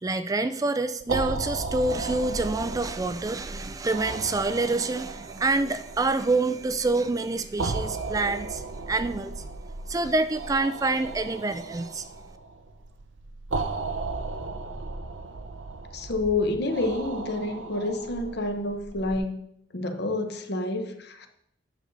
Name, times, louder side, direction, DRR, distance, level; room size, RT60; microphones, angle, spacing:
voice 1, 0.0-9.4 9.9-12.1, right 3 dB, 20° right, 10 dB, 0.3 m, -27 dB
sound 1, 1.0-19.2, right 3 dB, 85° right, 0.7 m, -36 dB
voice 2, 15.9-19.4 19.7-21.3, left 2 dB, 60° left, 6 dB, 1.0 m, -28 dB
9.1 x 6.6 x 4.0 m, 0.74 s
head